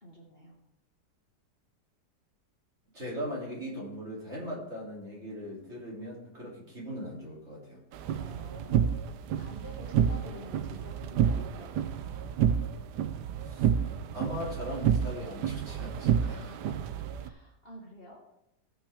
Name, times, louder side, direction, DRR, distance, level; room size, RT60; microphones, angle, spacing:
voice 1, 0.0-0.6 8.2-8.8 9.4-12.3 16.2-16.9 17.2-18.2, equal, 35° left, -2 dB, 1.9 m, -48 dB
voice 2, 2.9-7.8 13.4-13.7 14.1-16.4, equal, 40° right, -5 dB, 3.1 m, -39 dB
sound 1, 7.9-17.3, right 8 dB, 80° right, 1.2 m, -29 dB
17.5 x 5.9 x 3.5 m, 0.83 s
omnidirectional pair, 1.8 m